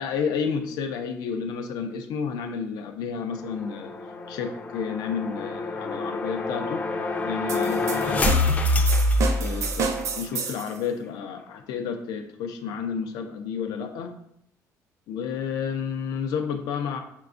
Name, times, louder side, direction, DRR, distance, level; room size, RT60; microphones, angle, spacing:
voice 1, 0.0-3.9 4.3-6.9 7.2-8.8 9.4-14.1 15.1-17.0, left 6 dB, 85° left, 6 dB, 0.4 m, -31 dB
sound 1, 3.3-10.1, left 2 dB, 25° left, 0.3 m, -26 dB
sound 2, 7.5-10.8, right 5 dB, 50° right, 0.4 m, -30 dB
5.6 x 2.2 x 2.5 m, 0.74 s
cardioid pair, 145°, 6 cm